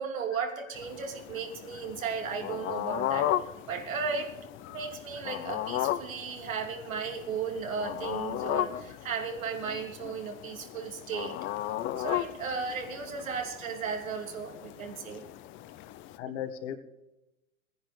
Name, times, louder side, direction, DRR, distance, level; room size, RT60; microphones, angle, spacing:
voice 1, 0.0-3.3 3.7-4.3 4.7-11.4 11.8-15.2, right 5 dB, 80° right, 3 dB, 2.9 m, -35 dB
sound 1, 0.8-16.2, left 13 dB, 30° left, 0.8 m, -36 dB
voice 2, 16.2-16.8, left 9 dB, 55° left, 8 dB, 1.9 m, -39 dB
15.5 x 10.5 x 4.9 m, 0.94 s
hypercardioid pair, 115°, 40 cm